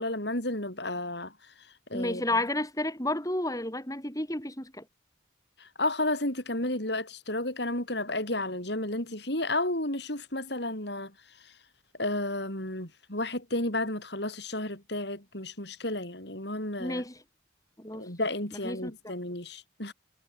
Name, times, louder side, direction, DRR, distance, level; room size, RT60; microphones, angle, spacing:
voice 1, 0.0-2.3 5.6-11.5 12.0-17.0 17.9-19.9, left 1 dB, 55° left, 6.3 m, -32 dB
voice 2, 1.9-4.8 16.8-17.1 17.8-18.0 18.6-18.9, left 1 dB, 15° left, 4.8 m, -31 dB
head